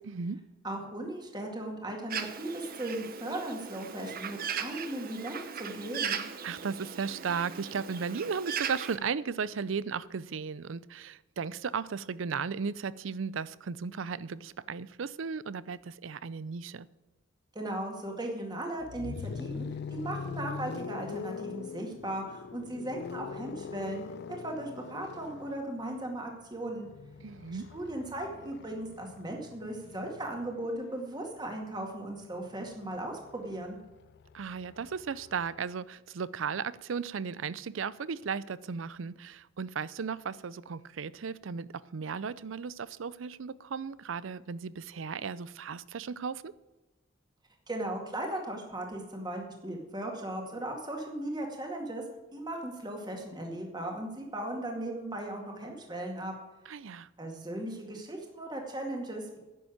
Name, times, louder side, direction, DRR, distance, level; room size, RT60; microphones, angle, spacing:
voice 1, 0.0-0.4 6.4-16.9 27.2-27.7 34.3-46.5 56.7-57.1, right 6 dB, 75° right, 19 dB, 0.5 m, -35 dB
voice 2, 0.6-6.2 17.5-24.0 24.4-26.9 27.5-33.8 47.7-52.0 52.3-56.3 57.2-59.4, right 1 dB, 20° right, 1 dB, 2.1 m, -37 dB
Bird, 2.1-9.0, right 7 dB, 50° right, 0.9 m, -38 dB
sound 1, 18.8-30.8 32.0-35.6, left 5 dB, 55° left, 0.3 m, -43 dB
11.0 x 7.2 x 9.0 m, 1.1 s
head